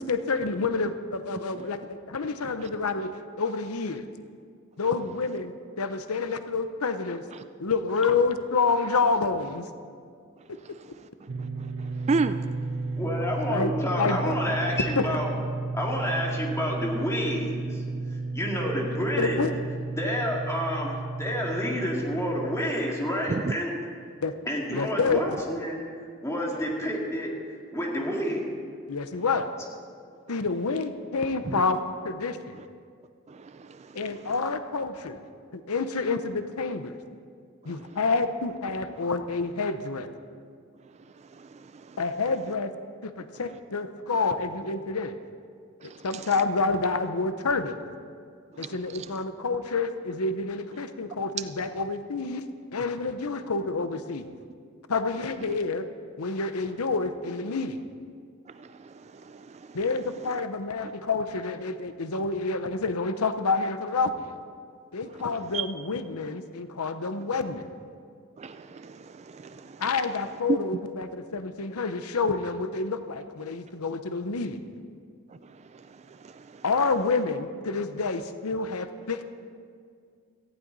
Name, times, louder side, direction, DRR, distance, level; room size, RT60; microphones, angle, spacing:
voice 1, 0.0-3.1 3.4-4.1 4.8-7.2 7.6-9.7 13.5-13.7 14.0-14.3 15.0-15.1 19.2-19.5 24.2-24.3 24.7-25.4 28.9-29.5 30.3-32.6 33.9-35.2 35.5-37.0 37.6-40.1 42.0-42.7 43.0-45.2 45.8-47.8 48.6-52.4 52.7-54.3 54.9-55.9 56.2-57.8 59.7-64.4 64.9-67.7 69.8-74.7 76.6-79.2, left 4 dB, 85° left, 9 dB, 0.8 m, -28 dB
sound 1, 11.3-22.7, right 3 dB, 60° right, 0.9 m, -33 dB
voice 2, 12.1-12.4 23.3-23.6 33.3-33.9 41.9-42.0 48.6-48.7 58.6-58.7 59.2-59.5 65.5-65.7 68.4-69.8 70.5-70.6 76.2-76.4, right 4 dB, 30° right, 11 dB, 0.3 m, -30 dB
voice 3, 13.0-15.3 15.7-17.8 18.3-19.4 20.0-23.7 24.5-25.8 26.2-27.3 27.7-28.5, equal, 15° left, -2 dB, 2.3 m, -29 dB
18.0 x 14.5 x 4.1 m, 2.2 s
head